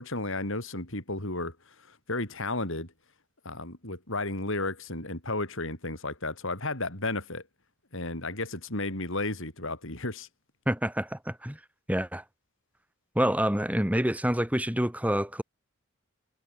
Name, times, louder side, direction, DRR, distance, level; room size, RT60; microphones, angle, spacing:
voice 1, 0.0-1.5 2.1-2.9 3.4-7.4 7.9-10.3, left 2 dB, 65° left, 7.7 m, -33 dB
voice 2, 10.7-11.6 11.9-12.2 13.1-15.4, equal, 5° right, 3.2 m, -27 dB
head